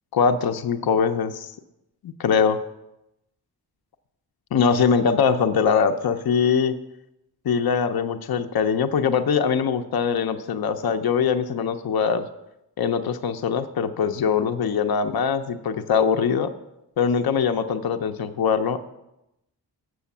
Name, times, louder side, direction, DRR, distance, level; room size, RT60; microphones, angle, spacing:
voice 1, 0.1-1.5 2.2-2.6 4.5-6.7 7.4-12.3 12.8-16.5 17.0-18.8, left 6 dB, 60° left, 7 dB, 0.6 m, -22 dB
7.4 x 6.3 x 7.0 m, 0.88 s
wide cardioid pair, 110°, 40 cm